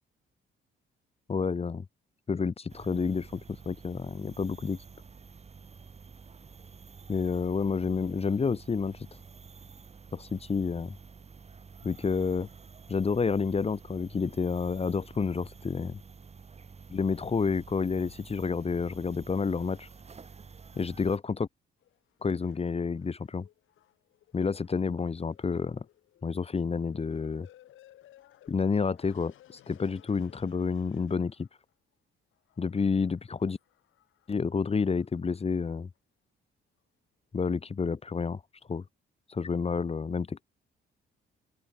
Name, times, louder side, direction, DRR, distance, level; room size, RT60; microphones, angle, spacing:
voice 1, 1.3-1.8 2.3-4.8 7.1-9.1 10.1-10.9 11.8-12.5 12.9-15.9 16.9-19.9 20.8-21.5 22.2-23.5 24.3-25.8 26.2-27.5 28.5-29.3 29.7-31.5 32.6-33.6 34.3-35.9 37.3-38.4 38.7-38.8 39.3-40.4, left 5 dB, 30° left, 1.4 m, -29 dB
sound 1, 2.7-21.2, right 5 dB, 35° right, 2.0 m, -50 dB
sound 2, 21.8-31.7 32.3-35.3 36.0-36.1, left 13 dB, 80° left, 6.5 m, -60 dB
open air
cardioid pair, 90°, 20 cm